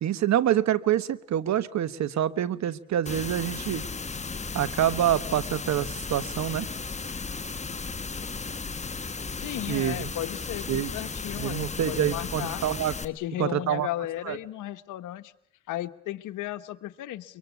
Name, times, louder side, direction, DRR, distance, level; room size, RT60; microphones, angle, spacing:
voice 1, 0.0-3.8 4.5-6.7 9.7-10.1 10.7-10.9 11.4-12.9 13.4-13.9 14.3-14.4, right 11 dB, 65° right, 16 dB, 1.2 m, -26 dB
sound 1, 3.1-13.1, left 4 dB, 20° left, 1.4 m, -35 dB
voice 2, 9.4-12.6 13.0-15.3 15.7-17.4, left 14 dB, 85° left, 11 dB, 1.2 m, -35 dB
23.5 x 23.5 x 8.3 m, 0.68 s
cardioid pair, 90°, 30 cm